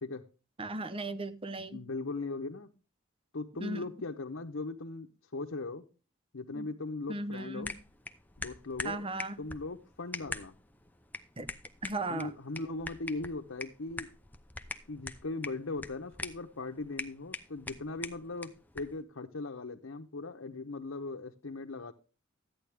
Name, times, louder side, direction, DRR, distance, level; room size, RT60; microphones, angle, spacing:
voice 1, 0.6-1.8 3.6-3.8 6.5-6.7 7.1-7.8 8.8-9.4 11.4-11.5 11.8-12.4, right 2 dB, 25° right, 0.9 m, -36 dB
voice 2, 1.7-2.7 3.3-5.1 5.3-5.8 6.3-7.7 8.4-9.1 9.4-10.5 12.1-14.1 14.9-21.9, left 3 dB, 75° left, 1.0 m, -39 dB
sound 1, 7.6-19.0, left 2 dB, 10° left, 0.7 m, -44 dB
13.5 x 9.7 x 3.5 m
head